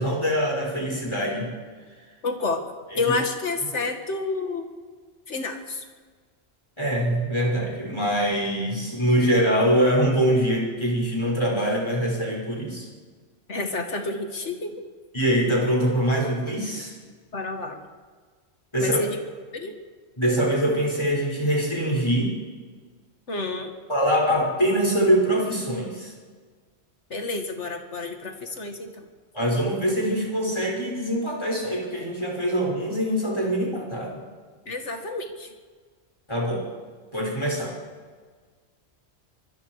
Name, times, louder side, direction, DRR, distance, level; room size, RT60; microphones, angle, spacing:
voice 1, 0.0-1.5 2.9-3.1 6.8-12.9 15.1-16.9 18.7-19.0 20.2-22.4 23.9-26.1 29.3-34.2 36.3-36.7 37.1-37.7, equal, 25° left, -3 dB, 5.9 m, -23 dB
voice 2, 2.2-2.6 3.0-4.6 5.3-5.8 13.5-14.7 17.3-17.8 18.8-19.2 19.5-19.7 23.3-23.7 27.1-29.1 34.7-35.5, left 3 dB, 80° left, 5 dB, 2.3 m, -29 dB
25.0 x 21.5 x 4.9 m, 1.5 s
omnidirectional pair, 1.2 m